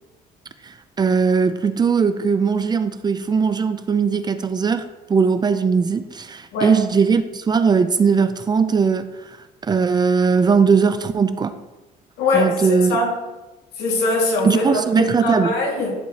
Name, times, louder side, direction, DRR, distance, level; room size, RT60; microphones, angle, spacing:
voice 1, 0.6-9.2 9.6-11.7 12.3-13.0 14.4-15.6, right 5 dB, 25° right, 12 dB, 0.4 m, -19 dB
voice 2, 12.2-13.1 13.8-15.9, left 2 dB, 80° left, 0 dB, 2.0 m, -22 dB
11.0 x 4.8 x 2.8 m, 1.1 s
cardioid pair, 110°, 17 cm